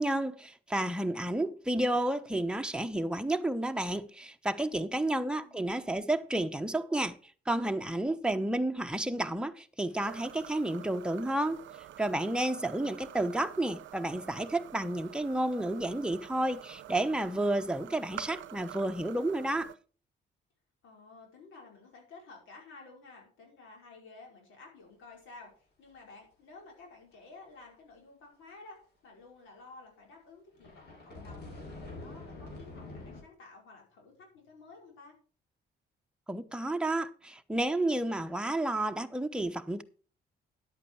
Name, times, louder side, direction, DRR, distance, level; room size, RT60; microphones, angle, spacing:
voice 1, 0.0-7.2 7.5-11.6 12.0-19.7 36.3-39.8, right 1 dB, 5° right, 0.9 m, -31 dB
voice 2, 4.9-5.8 20.8-31.5 31.8-35.1, left 3 dB, 85° left, 5.0 m, -53 dB
sound 1, 10.0-19.8, right 11 dB, 70° right, 0.7 m, -47 dB
sound 2, 30.5-33.2, left 2 dB, 55° left, 5.2 m, -45 dB
11.0 x 8.4 x 4.7 m
cardioid pair, 90°, 20 cm